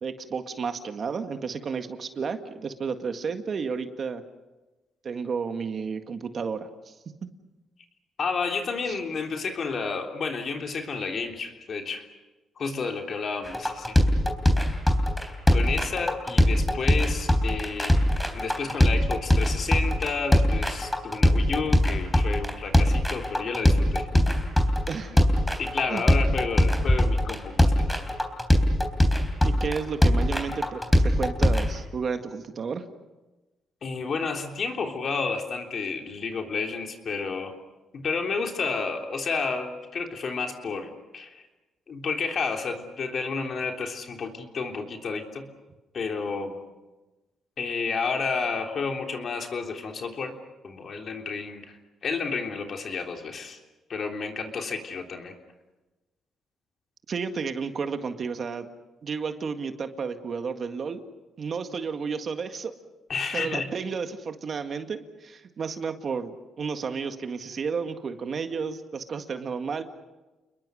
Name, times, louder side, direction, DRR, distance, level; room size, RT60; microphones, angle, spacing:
voice 1, 0.0-4.2 5.0-6.9 8.9-9.0 24.9-25.2 25.9-26.0 29.4-32.8 57.1-58.7 59.0-61.0 61.4-62.7 63.3-69.8, right 5 dB, 50° right, 7 dB, 1.9 m, -32 dB
voice 2, 8.2-12.1 12.6-14.0 15.5-18.0 18.3-24.2 25.1-25.2 25.6-28.0 33.8-37.5 37.9-41.4 41.9-45.5 45.9-46.6 47.6-50.3 50.6-51.8 52.0-53.6 53.9-55.3 63.1-63.7, left 4 dB, 50° left, 3 dB, 3.4 m, -31 dB
sound 1, 13.5-31.7, left 1 dB, 10° left, 3.7 m, -21 dB
29.5 x 21.5 x 6.4 m, 1.1 s
cardioid pair, 90°, 0 cm